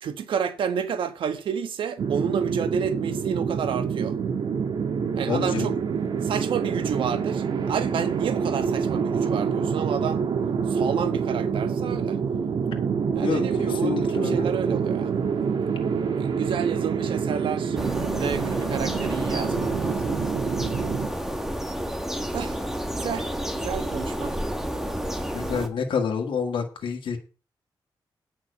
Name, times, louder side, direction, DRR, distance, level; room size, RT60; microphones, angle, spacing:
voice 1, 0.0-4.2 5.2-5.8 6.2-10.2 10.7-12.2 13.1-15.1 16.2-17.8 18.1-20.1 22.3-24.3, right 7 dB, 90° right, 1.4 m, -30 dB
sound 1, 2.0-21.1, right 6 dB, 70° right, 1.8 m, -26 dB
voice 2, 5.3-5.7 13.2-14.5 25.3-27.2, left 6 dB, 80° left, 1.9 m, -28 dB
sound 2, 17.8-25.7, equal, 5° right, 1.9 m, -30 dB
9.2 x 5.8 x 8.3 m
cardioid pair, 95°, 8 cm